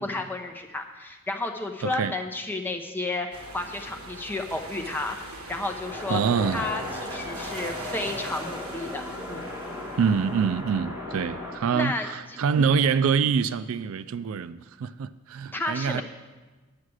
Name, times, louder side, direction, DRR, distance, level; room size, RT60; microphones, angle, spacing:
voice 1, 0.0-3.3 3.5-6.2 6.5-9.0 9.3-9.5 11.7-12.6 15.5-16.0, left 2 dB, 10° left, 3 dB, 0.7 m, -32 dB
voice 2, 1.8-2.1 6.1-6.7 10.0-16.0, right 6 dB, 70° right, 15 dB, 0.3 m, -25 dB
sound 1, 3.3-11.5, right 2 dB, 85° right, 1.4 m, -42 dB
sound 2, 5.9-11.5, left 1 dB, 15° right, 2.7 m, -36 dB
9.7 x 7.3 x 6.3 m, 1.2 s
head